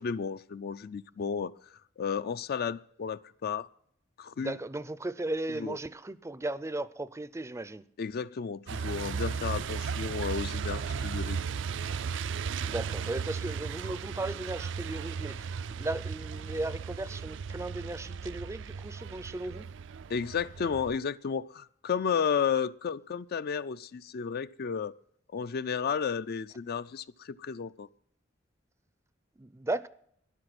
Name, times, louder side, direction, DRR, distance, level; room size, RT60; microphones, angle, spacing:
voice 1, 0.0-1.5 2.0-3.7 4.2-4.6 5.5-5.8 8.0-11.4 20.1-24.9 25.3-27.9, left 6 dB, 55° left, 0.4 m, -32 dB
voice 2, 4.4-7.8 12.6-19.7 29.4-29.9, right 2 dB, 15° right, 0.5 m, -36 dB
Truck, 8.7-21.0, right 6 dB, 70° right, 0.4 m, -36 dB
13.0 x 10.5 x 6.0 m
head